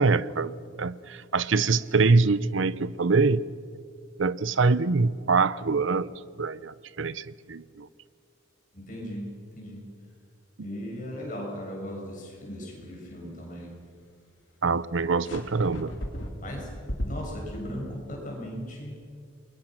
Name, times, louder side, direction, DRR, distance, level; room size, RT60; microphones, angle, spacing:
voice 1, 0.0-3.4 4.2-7.9 14.6-15.9, right 4 dB, 65° right, 17 dB, 0.7 m, -24 dB
voice 2, 8.7-9.8 10.6-13.7 16.4-16.7 17.0-19.0, equal, 40° left, -1 dB, 6.5 m, -37 dB
sound 1, 15.2-17.6, equal, 65° left, 3.1 m, -35 dB
28.5 x 22.0 x 6.1 m, 2.2 s
head